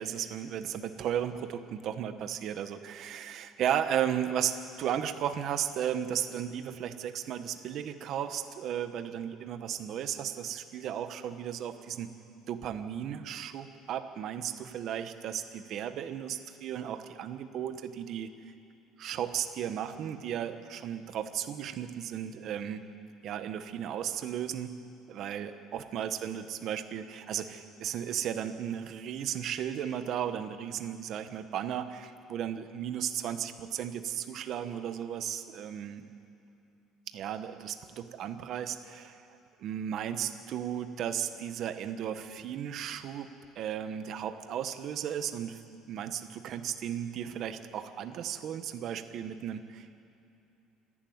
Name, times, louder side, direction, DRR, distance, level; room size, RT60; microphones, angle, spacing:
voice 1, 0.0-12.1 12.5-18.3 19.0-22.8 23.2-24.8 25.1-36.0 37.1-39.2 39.6-43.3 43.5-45.6 45.9-50.0, right 9 dB, 45° right, 9 dB, 1.1 m, -35 dB
27.0 x 11.5 x 9.5 m, 2.7 s
cardioid pair, 160°, 0 cm